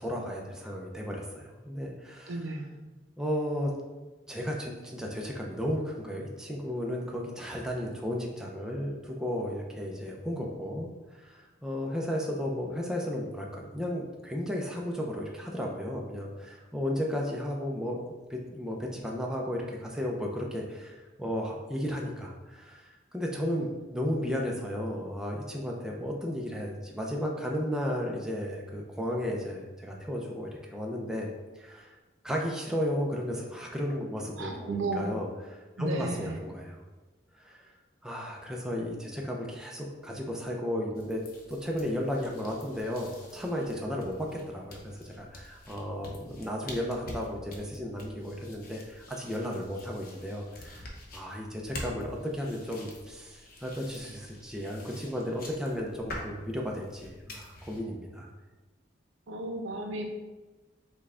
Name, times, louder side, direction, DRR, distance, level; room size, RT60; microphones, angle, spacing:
voice 1, 0.0-2.3 3.2-3.7 4.3-18.0 18.3-31.3 31.6-32.0 32.2-36.8 37.3-37.6 38.0-41.2 41.5-58.3, equal, 5° right, -1 dB, 0.4 m, -34 dB
voice 2, 2.3-2.7 34.4-35.1 35.8-36.4 59.3-60.0, right 2 dB, 85° right, 3 dB, 0.6 m, -34 dB
sound 1, 40.9-57.8, left 1 dB, 50° left, 0.7 m, -47 dB
5.4 x 2.2 x 3.6 m, 1.2 s
head